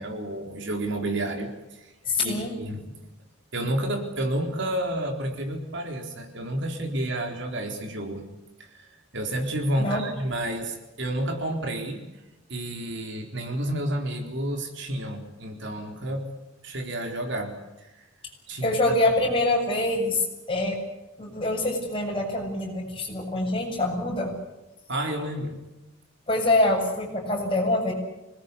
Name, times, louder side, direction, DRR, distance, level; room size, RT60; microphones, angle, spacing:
voice 1, 0.0-1.5 1.8-1.9 2.2-2.8 3.5-8.2 8.6-8.9 9.1-12.0 12.5-16.3 16.6-17.5 17.8-18.0 18.5-18.7 24.9-25.6, right 1 dB, 60° right, 4 dB, 3.9 m, -30 dB
voice 2, 2.0-2.5 9.8-10.0 18.6-20.8 21.2-24.3 26.3-27.9, left 2 dB, 25° left, 0 dB, 7.8 m, -25 dB
26.5 x 20.5 x 8.4 m, 1.0 s
head